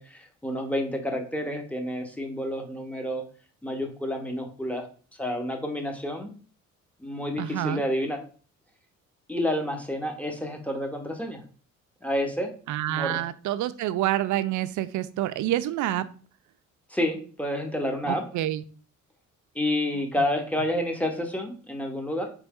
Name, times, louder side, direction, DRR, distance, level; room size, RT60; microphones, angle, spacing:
voice 1, 0.0-3.2 3.6-4.9 5.2-6.3 7.0-8.2 9.3-11.4 12.0-12.5 12.9-13.2 16.9-18.3 19.5-22.3, left 1 dB, 5° left, 4 dB, 1.0 m, -29 dB
voice 2, 7.4-7.8 12.7-16.1 18.1-18.6, right 13 dB, 75° right, 13 dB, 0.5 m, -27 dB
4.1 x 3.3 x 3.5 m, 0.40 s
cardioid pair, 90°, 30 cm